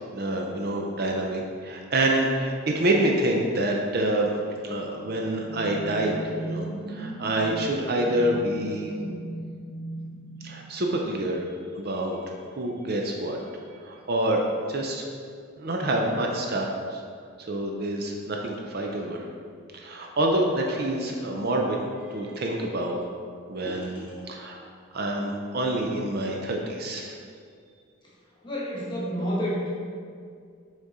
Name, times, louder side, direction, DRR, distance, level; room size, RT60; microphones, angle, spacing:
voice 1, 0.1-4.3 4.6-8.9 10.4-11.5 11.8-12.2 12.5-13.4 13.8-14.4 14.7-15.0 15.6-17.0 17.5-19.2 19.7-21.8 22.1-23.0 23.5-24.7 24.9-27.1, right 1 dB, 45° right, 0 dB, 0.5 m, -27 dB
sound 1, 4.9-11.2, right 1 dB, 65° left, 0.9 m, -37 dB
voice 2, 23.6-24.2 28.4-29.6, equal, 20° left, -6 dB, 1.2 m, -30 dB
6.3 x 3.7 x 4.1 m, 2.2 s
head